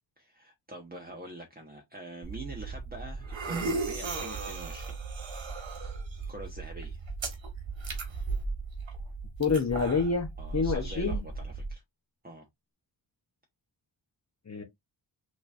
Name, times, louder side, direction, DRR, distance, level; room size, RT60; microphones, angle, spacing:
voice 1, 0.2-5.0 6.3-7.0 10.4-11.8 12.2-12.4, right 1 dB, 20° right, 1.3 m, -45 dB
sound 1, 2.2-11.7, right 4 dB, 80° right, 1.8 m, -36 dB
voice 2, 9.4-11.2 14.5-14.6, left 5 dB, 35° left, 0.9 m, -28 dB
6.1 x 3.1 x 2.6 m
wide cardioid pair, 95°, 45 cm